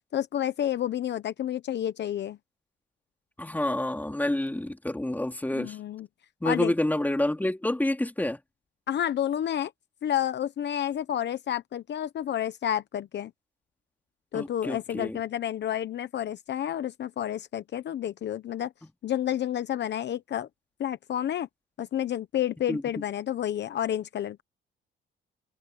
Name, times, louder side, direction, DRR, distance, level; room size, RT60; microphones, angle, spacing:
voice 1, 0.1-2.4 5.5-6.1 6.4-6.7 8.9-9.7 10.0-13.3 14.3-18.7 19.0-20.5 20.8-21.5 21.8-24.4, left 10 dB, 60° left, 1.0 m, -30 dB
voice 2, 3.4-5.8 6.4-8.4 14.3-15.2 22.7-23.0, left 1 dB, 10° left, 3.6 m, -28 dB
cardioid pair, 90°, 20 cm